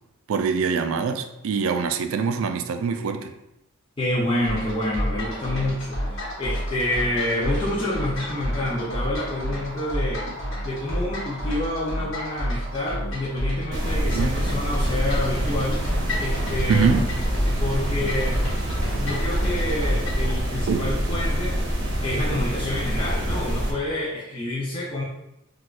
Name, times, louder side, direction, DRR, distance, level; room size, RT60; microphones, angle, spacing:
voice 1, 0.3-3.3 14.1-14.4 16.7-17.1 20.7-20.8, right 5 dB, 70° right, 7 dB, 0.3 m, -23 dB
voice 2, 4.0-10.3 10.6-15.8 16.2-17.1 17.6-18.4 19.0-21.6 22.0-25.0, left 1 dB, 25° left, -7 dB, 0.5 m, -28 dB
sound 1, 4.4-20.3, equal, 60° left, 1.1 m, -30 dB
sound 2, 13.7-23.7, equal, 55° right, 0.7 m, -26 dB
4.1 x 2.3 x 2.4 m, 0.85 s
head